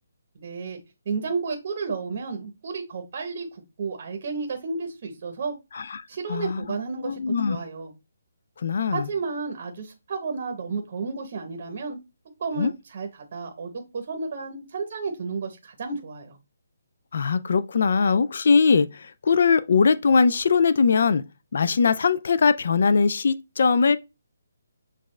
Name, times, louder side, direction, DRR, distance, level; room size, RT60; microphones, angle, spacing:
voice 1, 0.3-0.8 1.1-5.5 6.1-7.2 7.5-7.9 8.9-12.0 12.4-16.4, right 4 dB, 35° right, 0.8 m, -32 dB
voice 2, 5.7-6.0 6.3-6.6 7.0-7.6 8.6-9.1 12.6-12.7 17.1-21.2 21.5-24.0, left 5 dB, 50° left, 0.3 m, -21 dB
6.5 x 2.3 x 3.1 m
hypercardioid pair, 175°, 0 cm